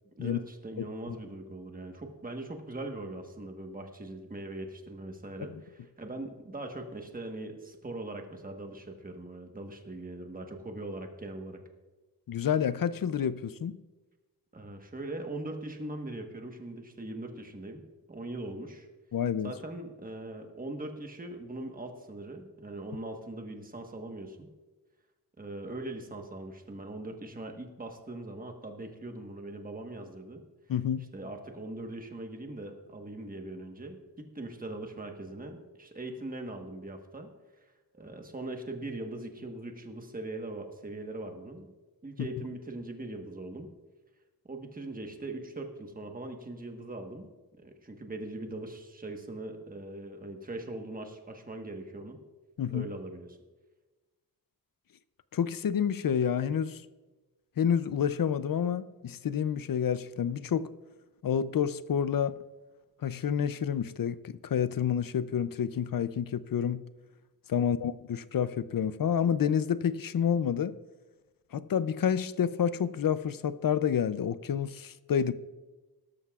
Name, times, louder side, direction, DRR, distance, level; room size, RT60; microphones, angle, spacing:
voice 1, 0.2-11.6 14.5-17.8 18.1-18.9 19.4-24.5 25.4-30.4 31.1-37.3 37.6-37.7 37.9-41.7 42.0-43.7 44.4-47.3 47.6-52.2 52.7-53.4 67.5-67.8, right 2 dB, 25° right, 4 dB, 1.3 m, -41 dB
voice 2, 0.8-1.2 12.3-13.8 19.1-19.5 30.7-31.1 52.6-52.9 55.3-56.8 57.6-60.7 61.2-62.4 63.0-66.8 67.5-70.7 71.5-75.3, left 8 dB, 65° left, 15 dB, 0.5 m, -29 dB
17.0 x 13.5 x 2.4 m, 1.2 s
wide cardioid pair, 115°, 38 cm